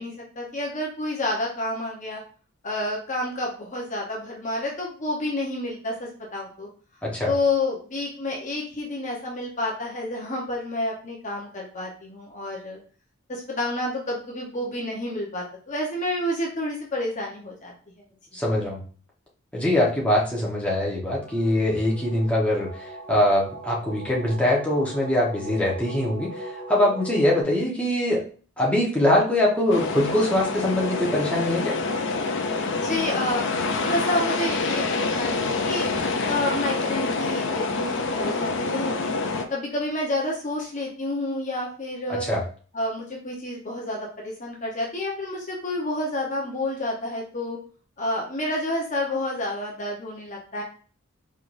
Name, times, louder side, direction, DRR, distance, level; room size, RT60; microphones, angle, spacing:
voice 1, 0.0-2.2 2.6-6.7 7.2-12.8 13.3-17.7 32.8-35.9 36.3-39.1 39.5-42.3 42.7-47.6 48.0-50.6, left 1 dB, 35° left, -2 dB, 0.9 m, -29 dB
voice 2, 18.3-18.8 19.5-22.7 23.1-28.2 28.6-31.8 42.2-42.4, left 1 dB, 5° left, -5 dB, 1.1 m, -23 dB
sound 1, 21.2-27.4, right 1 dB, 60° right, 2.2 m, -39 dB
sound 2, 29.7-39.5, left 3 dB, 55° left, 0.5 m, -26 dB
4.5 x 3.5 x 2.6 m, 0.41 s
head